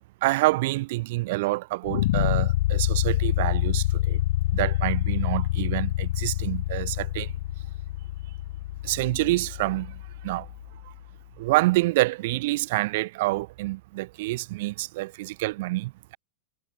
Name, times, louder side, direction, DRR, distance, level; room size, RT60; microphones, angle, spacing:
voice 1, 0.2-4.2 4.5-7.3 8.8-10.5 11.4-16.2, right 20 dB, 50° right, 6.7 m, -27 dB
sound 1, 1.8-10.9, left 16 dB, 55° left, 0.8 m, -27 dB
figure-of-eight pair, 90°, 0 cm